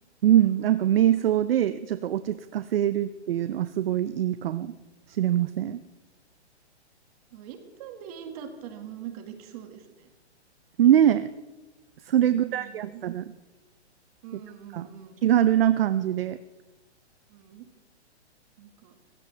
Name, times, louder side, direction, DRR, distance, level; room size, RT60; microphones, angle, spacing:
voice 1, 0.2-4.8 5.1-5.8 10.8-11.3 12.1-13.2 14.7-14.8 15.2-16.4, right 11 dB, 55° right, 13 dB, 0.6 m, -23 dB
voice 2, 7.3-10.1 12.3-13.0 14.2-15.2 17.3-17.7 18.6-19.0, right 9 dB, 35° right, 6 dB, 2.0 m, -43 dB
20.0 x 16.0 x 3.4 m, 1.1 s
hypercardioid pair, 155°, 34 cm